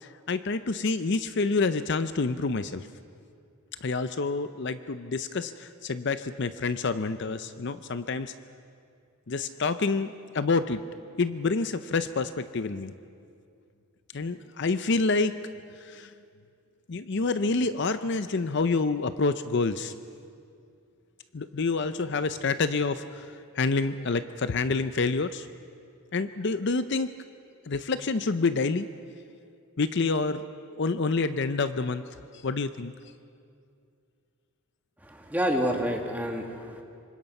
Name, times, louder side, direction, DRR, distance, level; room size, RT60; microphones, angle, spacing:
voice 1, 0.0-2.9 3.8-8.3 9.3-10.9 11.2-12.9 14.1-16.1 16.9-19.9 21.3-25.5 26.1-27.1 27.7-28.9 29.8-32.0 32.4-32.9, left 3 dB, 50° left, 11 dB, 0.6 m, -28 dB
voice 2, 35.0-36.8, equal, 5° right, 2 dB, 1.8 m, -28 dB
26.0 x 25.0 x 5.4 m, 2.4 s
head